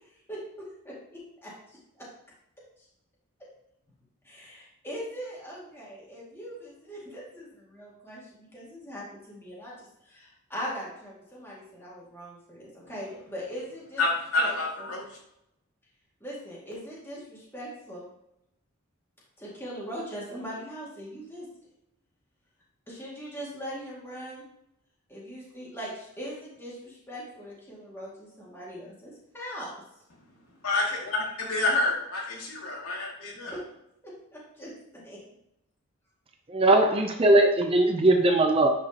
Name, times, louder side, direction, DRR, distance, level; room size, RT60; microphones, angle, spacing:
voice 1, 0.8-1.5 4.2-14.0 14.4-14.9 16.2-18.1 19.4-21.5 22.9-24.4 25.1-29.7 33.5-33.6 34.3-35.2, equal, 10° left, -6 dB, 2.1 m, -40 dB
voice 2, 14.0-15.0 30.6-33.5, left 2 dB, 80° left, -3 dB, 2.3 m, -28 dB
voice 3, 36.5-38.7, right 2 dB, 25° right, 4 dB, 0.5 m, -20 dB
10.0 x 5.0 x 2.9 m, 0.82 s
head